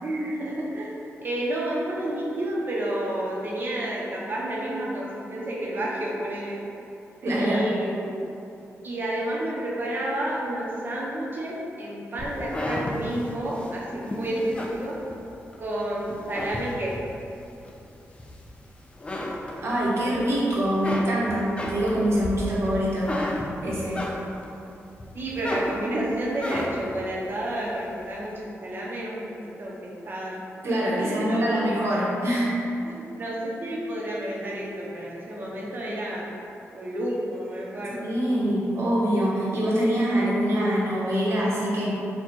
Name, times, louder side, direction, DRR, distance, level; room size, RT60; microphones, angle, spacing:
voice 1, 0.0-0.9 1.2-6.6 7.4-8.2 8.8-15.0 15.6-16.9 25.1-29.2 29.6-29.7 30.0-30.4 31.0-31.6 32.8-36.3 36.7-38.1, right 1 dB, 45° right, -5 dB, 0.9 m, -30 dB
voice 2, 7.2-7.7 19.6-23.1 23.6-24.0 30.6-32.5 37.9-41.9, equal, 60° right, -7 dB, 1.2 m, -24 dB
sound 1, 12.2-15.6 16.0-17.1 17.6-18.6 18.9-20.2 20.5-24.6 25.0-27.0, left 1 dB, 20° left, 0.4 m, -33 dB
4.3 x 2.4 x 4.4 m, 2.7 s
wide cardioid pair, 120°, 5 cm